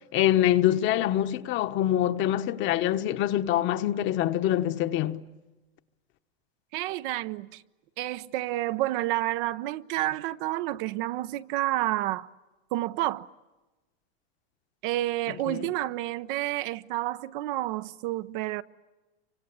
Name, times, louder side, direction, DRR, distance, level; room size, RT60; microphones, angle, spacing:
voice 1, 0.1-5.2 15.3-15.7, left 12 dB, 35° left, 1.2 m, -25 dB
voice 2, 6.7-7.6 8.0-12.3 12.7-13.3 14.8-18.6, right 16 dB, 50° right, 0.9 m, -29 dB
28.0 x 25.0 x 8.4 m
supercardioid pair, 135°, 32 cm